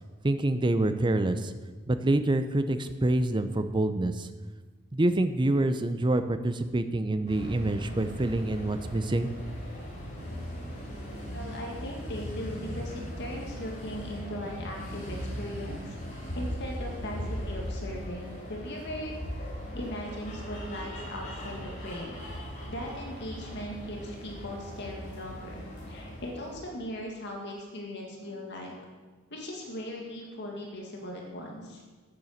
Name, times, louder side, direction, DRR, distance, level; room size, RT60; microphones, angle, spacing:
voice 1, 0.2-1.5 1.9-4.3 4.9-9.3, right 1 dB, 20° right, 10 dB, 0.6 m, -26 dB
sound 1, 7.3-26.8, equal, 35° left, 3.5 m, -39 dB
voice 2, 11.3-16.0 16.4-19.1 19.7-22.2 22.7-28.7 29.3-31.8, left 1 dB, 55° left, 0 dB, 2.0 m, -39 dB
9.0 x 8.7 x 6.6 m, 1.3 s
head